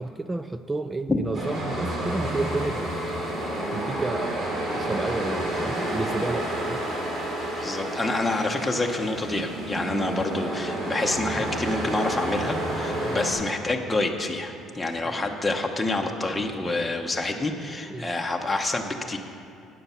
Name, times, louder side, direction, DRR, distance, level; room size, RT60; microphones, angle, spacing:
voice 1, 0.0-2.9 3.7-6.9 13.0-13.2 15.0-15.2 17.9-18.2, right 2 dB, 10° right, 10 dB, 0.3 m, -31 dB
sound 1, 1.3-13.3, right 1 dB, 45° right, 3.0 m, -30 dB
voice 2, 7.6-19.2, left 2 dB, 10° left, 1 dB, 0.9 m, -27 dB
15.5 x 9.3 x 5.7 m, 2.5 s
cardioid pair, 155°, 0 cm